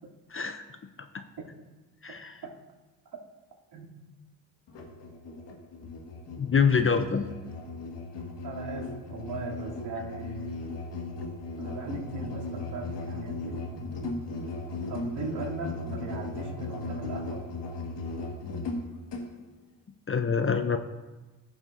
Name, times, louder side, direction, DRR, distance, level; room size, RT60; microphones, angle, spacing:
voice 1, 0.3-0.6 1.1-1.2 2.0-2.4 6.4-7.3 20.1-20.8, left 6 dB, 25° left, 8 dB, 0.7 m, -25 dB
voice 2, 3.7-4.1 8.4-10.6 11.6-14.1 14.9-17.4, right 3 dB, 55° right, -4 dB, 3.1 m, -39 dB
Musical instrument, 4.7-19.3, left 2 dB, 60° left, 2.0 m, -37 dB
14.5 x 7.1 x 2.7 m, 1.2 s
hypercardioid pair, 50°, 48 cm